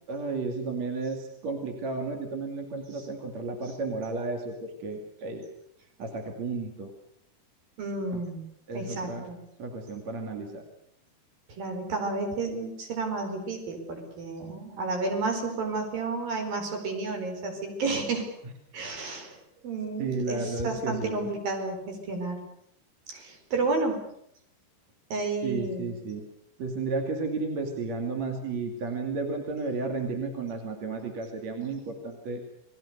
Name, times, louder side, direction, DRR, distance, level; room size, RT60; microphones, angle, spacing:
voice 1, 0.1-5.4 6.0-6.9 8.7-9.2 9.6-10.6 20.0-21.3 25.4-26.3 26.6-32.4, right 3 dB, 45° right, 3 dB, 3.6 m, -33 dB
voice 2, 7.8-8.4 8.7-9.4 11.5-18.3 18.7-19.4 19.6-22.4 23.1-24.0 25.1-26.0, right 3 dB, 65° right, 4 dB, 6.2 m, -31 dB
29.5 x 21.0 x 6.8 m, 0.74 s
omnidirectional pair, 4.4 m